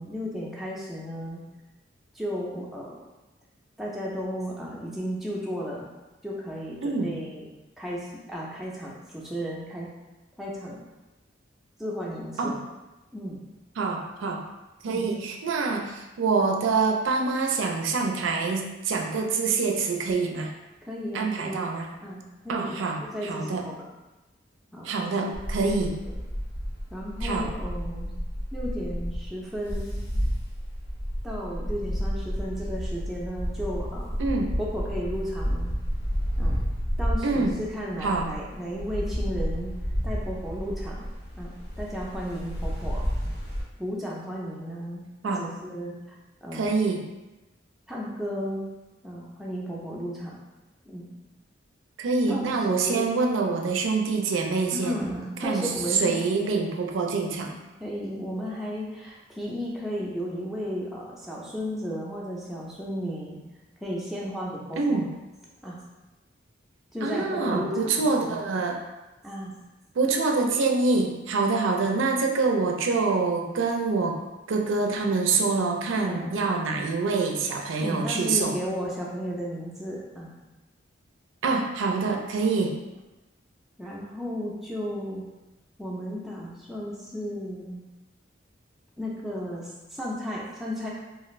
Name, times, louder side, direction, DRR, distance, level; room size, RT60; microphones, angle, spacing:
voice 1, 0.0-1.4 2.1-3.0 3.8-5.9 6.2-7.4 7.8-9.9 10.4-10.8 11.8-12.6 13.1-13.4 14.9-15.1 20.8-21.7 22.0-23.8 24.7-25.7 26.1-26.2 26.9-28.1 28.5-30.1 31.2-34.1 34.6-35.7 36.4-36.6 37.0-39.7 40.0-41.0 41.4-43.1 43.8-45.9 46.4-46.8 47.9-48.6 49.0-50.4 50.8-51.1 52.3-53.1 54.7-56.1 57.8-63.4 63.8-65.1 65.6-65.8 66.9-68.5 69.2-69.5 76.0-76.4 77.8-80.4 83.8-85.2 85.8-87.8 89.0-90.9, equal, ahead, -5 dB, 0.4 m, -34 dB
voice 2, 6.8-7.1 12.4-12.6 13.8-14.4 14.8-20.5 21.1-21.9 22.5-23.6 24.8-26.0 27.2-27.5 34.2-34.5 37.2-37.6 38.0-38.3 45.2-45.5 46.5-47.1 52.0-55.0 55.4-57.6 64.8-65.0 67.0-68.8 70.0-74.2 74.5-78.5 81.4-82.8, right 4 dB, 85° right, 2 dB, 0.4 m, -26 dB
sound 1, 25.3-43.6, equal, 55° left, 0.7 m, -31 dB
2.4 x 2.4 x 3.0 m, 1.1 s
head